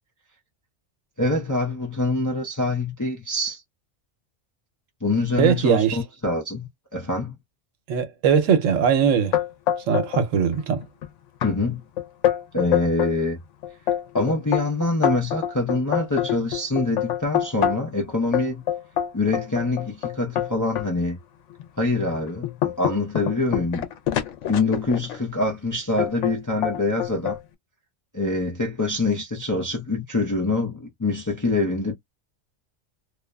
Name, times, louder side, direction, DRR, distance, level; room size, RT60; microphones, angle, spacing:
voice 1, 1.2-3.6 5.0-7.3 11.4-11.8 12.5-13.4 14.1-18.6 19.1-21.2 21.8-23.9 24.5-27.4 28.1-31.9, left 2 dB, 30° left, 0.4 m, -25 dB
voice 2, 5.4-6.0 7.9-9.3 9.9-10.8, right 7 dB, 80° right, 1.0 m, -20 dB
sound 1, 9.3-10.3 10.5-11.1 11.4-11.5 12.0-13.2 13.6-18.0 18.3-20.9 21.5-21.6 22.1-25.2 26.0-26.4 26.6-27.4, left 11 dB, 75° left, 0.9 m, -25 dB
2.5 x 2.3 x 2.2 m
omnidirectional pair, 1.3 m